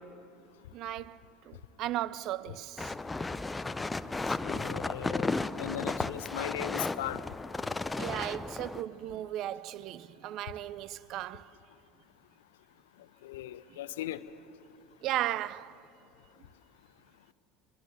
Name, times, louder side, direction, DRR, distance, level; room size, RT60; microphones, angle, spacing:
voice 1, 0.7-2.9 8.0-11.5 13.7-13.8 15.0-15.7, right 13 dB, 50° right, 0.5 m, -36 dB
sound 1, 2.8-8.8, left 3 dB, 15° left, 0.6 m, -34 dB
voice 2, 4.4-5.3 5.6-7.2 13.2-14.2, left 13 dB, 65° left, 0.7 m, -37 dB
22.5 x 22.0 x 7.0 m
figure-of-eight pair, 65°, 0 cm